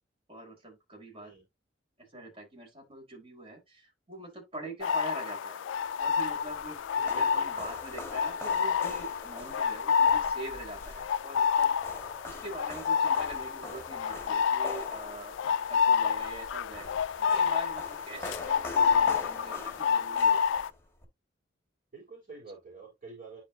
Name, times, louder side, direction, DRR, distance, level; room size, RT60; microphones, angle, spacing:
voice 1, 0.3-1.3 2.0-5.6 6.0-11.7 12.2-15.3 15.7-20.7, right 2 dB, 30° right, 4.3 m, -44 dB
sound 1, 4.8-20.7, left 6 dB, 75° left, 0.3 m, -29 dB
sound 2, 6.0-21.1, left 2 dB, 15° left, 1.7 m, -45 dB
voice 2, 7.0-7.6 18.1-18.3 21.9-23.4, right 3 dB, 45° right, 3.9 m, -48 dB
10.5 x 4.5 x 2.7 m
head